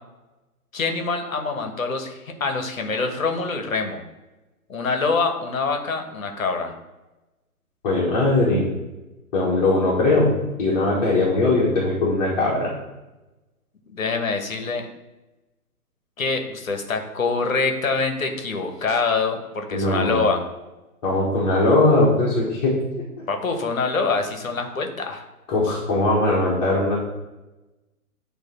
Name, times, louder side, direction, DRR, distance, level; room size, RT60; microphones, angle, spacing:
voice 1, 0.7-4.0 4.7-6.7 13.9-14.9 16.2-20.4 23.3-25.3, left 4 dB, 60° left, 4 dB, 1.3 m, -25 dB
voice 2, 7.8-8.7 9.3-10.3 10.6-12.7 19.7-20.2 21.0-22.7 25.5-26.9, left 2 dB, 25° left, -5 dB, 1.5 m, -20 dB
8.9 x 3.2 x 4.4 m, 1.1 s
figure-of-eight pair, 130°, 46 cm